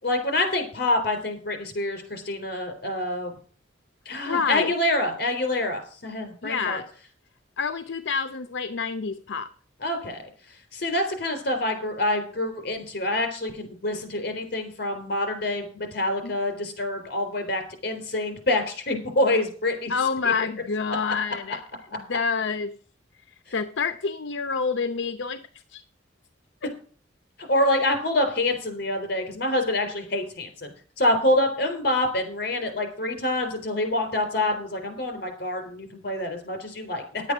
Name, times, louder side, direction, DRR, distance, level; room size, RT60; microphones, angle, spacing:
voice 1, 0.0-3.3 4.1-6.8 9.8-19.9 23.5-23.6 27.5-30.7 31.0-37.2, left 1 dB, 55° left, 6 dB, 3.7 m, -26 dB
voice 2, 4.3-4.7 6.4-6.9 7.6-9.5 16.2-16.3 19.9-21.6 21.9-22.7 23.5-25.4 25.7-25.8, left 5 dB, 80° left, 10 dB, 0.7 m, -27 dB
10.5 x 8.3 x 6.0 m, 0.42 s
head